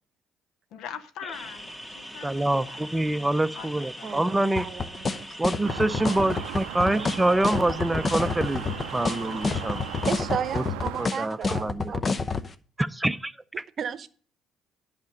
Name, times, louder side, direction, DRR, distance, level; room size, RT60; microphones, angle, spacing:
voice 1, 0.7-2.3 2.6-2.8 3.6-4.3, left 8 dB, 70° left, 1.0 m, -42 dB
sound 1, 1.3-10.1, equal, 15° left, 2.0 m, -42 dB
voice 2, 2.2-4.7 5.4-9.8 10.5-10.6 11.0-11.9 12.8-13.6, right 1 dB, 10° right, 0.6 m, -26 dB
voice 3, 4.0-5.7 10.0-12.0 13.5-14.1, right 7 dB, 50° right, 0.8 m, -34 dB
sound 2, 4.6-12.5, left 4 dB, 35° left, 0.8 m, -28 dB
sound 3, 5.6-11.1, right 15 dB, 80° right, 0.4 m, -38 dB
10.5 x 5.1 x 6.5 m
hypercardioid pair, 55°, 0 cm